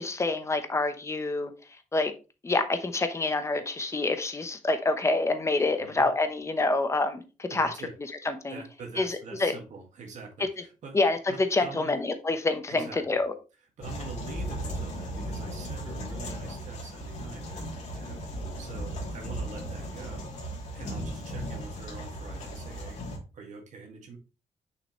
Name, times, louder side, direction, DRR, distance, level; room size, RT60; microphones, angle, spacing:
voice 1, 0.0-1.5 1.9-2.1 2.4-7.7 8.2-8.6 9.0-9.5 10.9-13.3, left 2 dB, 20° left, 0.9 m, -27 dB
voice 2, 5.8-6.1 7.5-7.9 8.5-11.0 11.3-12.0 12.7-13.2 13.8-23.0 23.3-24.2, right 4 dB, 65° right, 1.8 m, -45 dB
sound 1, 13.8-23.2, equal, 60° left, 2.8 m, -36 dB
6.6 x 5.8 x 3.1 m
cardioid pair, 105°, 13 cm